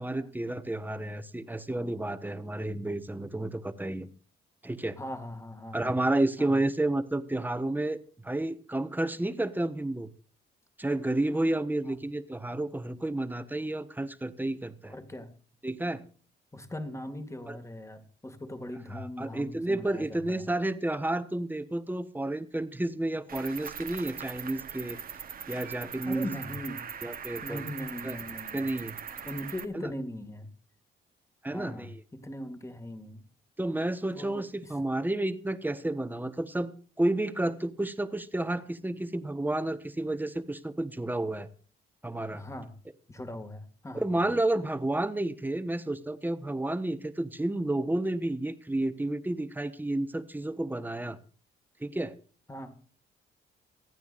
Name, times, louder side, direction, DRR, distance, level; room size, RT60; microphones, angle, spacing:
voice 1, 0.0-4.1 4.6-5.0 5.7-10.1 10.8-14.9 15.6-16.0 17.5-17.6 18.9-25.0 25.5-26.3 27.0-27.6 28.0-28.2 28.5-28.9 29.7-29.9 31.4-32.0 33.6-41.5 42.0-42.4 43.9-51.2 51.8-52.1, right 1 dB, 10° right, 11 dB, 1.2 m, -31 dB
voice 2, 5.0-5.9 6.4-6.6 11.8-12.0 14.9-15.3 16.5-20.4 26.1-26.8 27.4-28.7 29.1-30.5 31.5-33.2 34.1-34.7 42.3-42.8 43.1-44.2 52.5-52.8, left 1 dB, 15° left, 8 dB, 2.1 m, -40 dB
Cricket, 23.3-29.6, right 7 dB, 45° right, 1.2 m, -41 dB
27.5 x 9.3 x 2.5 m, 0.40 s
cardioid pair, 90°, 20 cm